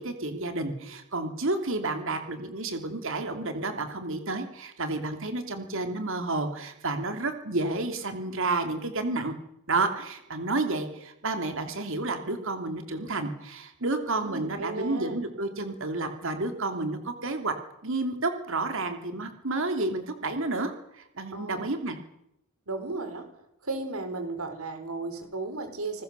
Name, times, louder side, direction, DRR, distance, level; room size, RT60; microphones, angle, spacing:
voice 1, 0.0-9.3 9.7-17.5 17.8-22.0, right 2 dB, 65° right, 7 dB, 2.8 m, -30 dB
voice 2, 14.2-15.2 21.3-21.7 22.7-23.3 23.6-26.0, right 3 dB, 80° right, 7 dB, 4.9 m, -35 dB
28.0 x 20.0 x 6.9 m, 0.79 s
head